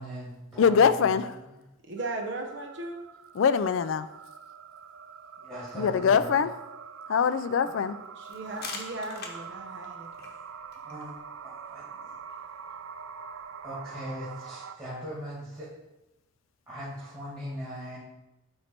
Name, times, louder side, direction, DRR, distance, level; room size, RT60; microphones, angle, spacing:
voice 1, 0.0-1.2 5.4-6.3 10.8-11.2 11.4-12.1 13.6-15.7 16.7-18.0, equal, 15° right, -10 dB, 1.9 m, -39 dB
voice 2, 0.6-1.3 3.3-4.1 5.8-6.5 7.1-8.0, left 6 dB, 70° left, 13 dB, 0.3 m, -23 dB
voice 3, 1.9-3.0 8.2-10.1, right 2 dB, 60° right, 3 dB, 0.8 m, -37 dB
sound 1, 2.0-14.7, right 6 dB, 80° right, 0.4 m, -44 dB
sound 2, 8.3-13.8, left 4 dB, 50° left, 0.9 m, -47 dB
8.0 x 3.2 x 4.4 m, 0.95 s
head